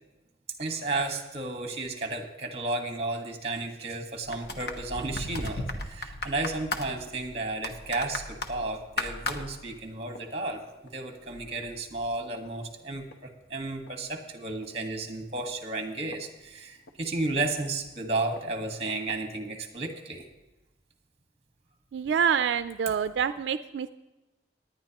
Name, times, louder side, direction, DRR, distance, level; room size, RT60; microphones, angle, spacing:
voice 1, 0.6-10.6 10.9-20.3, right 2 dB, 35° right, 4 dB, 1.5 m, -33 dB
sound 1, 4.2-10.1 10.4-10.5, left 2 dB, 60° left, 1.0 m, -37 dB
Walk footsteps, 4.4-11.1 11.4-11.8 12.3-12.4 13.1-13.2 13.6-13.7 13.9-14.0 14.5-14.7 15.4-17.0 17.5-17.6 18.4-18.5 18.9-19.1 19.8-19.9, equal, 85° left, 1.2 m, -42 dB
voice 2, 21.9-23.9, right 7 dB, 80° right, 11 dB, 0.3 m, -26 dB
18.5 x 10.5 x 3.0 m, 1.1 s
head